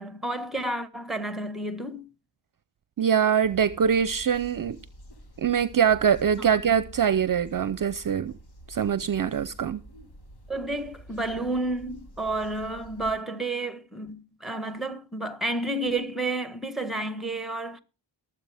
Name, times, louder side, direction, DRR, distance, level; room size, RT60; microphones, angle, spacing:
voice 1, 0.0-2.1 6.4-6.5 10.5-17.8, right 2 dB, ahead, 1.4 m, -31 dB
voice 2, 3.0-4.8 5.4-8.3 8.7-9.8, right 8 dB, 45° right, 0.6 m, -23 dB
sound 1, 3.4-13.1, right 1 dB, 60° left, 2.6 m, -48 dB
22.5 x 7.9 x 3.4 m
cardioid pair, 70°, 45 cm